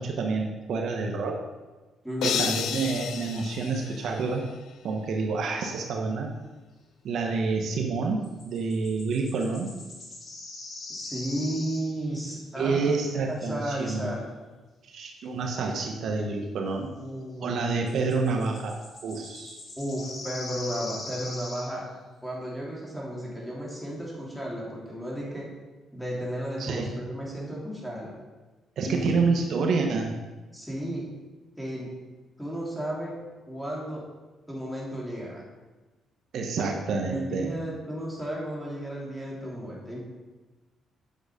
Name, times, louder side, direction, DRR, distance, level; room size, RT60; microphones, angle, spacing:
voice 1, 0.0-1.4 2.2-4.4 4.8-6.3 7.0-9.7 12.6-14.1 14.8-16.9 17.4-18.8 19.0-19.6 26.6-26.9 28.8-30.1 36.3-37.5, right 4 dB, 70° right, 2 dB, 1.1 m, -28 dB
voice 2, 2.0-2.5 10.9-13.0 13.3-14.3 17.0-17.8 19.8-21.8 22.2-25.5 25.9-28.1 28.8-29.2 30.5-31.0 31.6-31.9 32.4-33.1 33.5-34.0 34.4-35.4 37.1-40.0, equal, ahead, -5 dB, 3.2 m, -33 dB
sound 1, 2.2-4.5, left 8 dB, 80° left, 0.6 m, -32 dB
sound 2, 8.2-12.2 17.9-21.7, left 2 dB, 50° left, 2.8 m, -41 dB
9.0 x 6.4 x 5.0 m, 1.2 s
cardioid pair, 90°, 0 cm